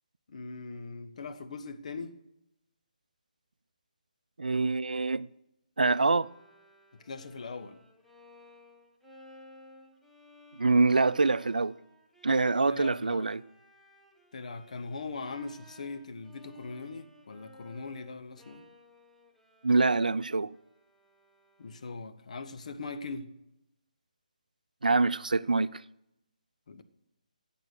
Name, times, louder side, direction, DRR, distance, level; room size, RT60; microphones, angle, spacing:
voice 1, 0.3-2.2 6.9-7.8 12.7-13.3 14.3-18.6 21.6-23.3 26.7-26.8, left 3 dB, 55° left, 1.2 m, -40 dB
voice 2, 4.4-5.3 5.8-6.3 10.5-11.8 12.2-13.4 19.6-20.5 24.8-25.8, right 3 dB, 80° right, 0.5 m, -25 dB
Bowed string instrument, 5.9-22.0, left 1 dB, ahead, 1.2 m, -58 dB
14.0 x 8.5 x 6.5 m
figure-of-eight pair, 150°, 4 cm